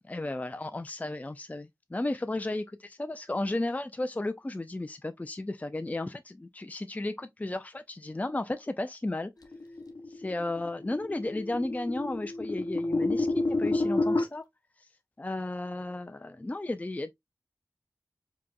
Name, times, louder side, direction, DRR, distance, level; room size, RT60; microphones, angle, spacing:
voice 1, 0.1-9.3 10.2-14.4 15.2-17.1, left 2 dB, 25° left, 0.4 m, -34 dB
sound 1, 9.5-14.2, left 2 dB, 75° left, 0.8 m, -30 dB
4.8 x 3.0 x 2.3 m
wide cardioid pair, 55°, 7 cm